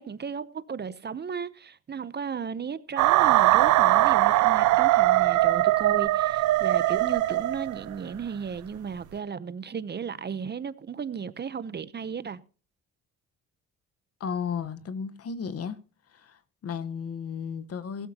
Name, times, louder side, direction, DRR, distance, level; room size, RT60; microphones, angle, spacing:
voice 1, 0.0-12.4, right 6 dB, 35° right, 0.7 m, -35 dB
sound 1, 3.0-7.9, right 16 dB, 75° right, 0.6 m, -21 dB
voice 2, 14.2-15.8 16.1-18.1, left 6 dB, 50° left, 1.2 m, -34 dB
16.5 x 12.5 x 2.9 m
cardioid pair, 90°, 30 cm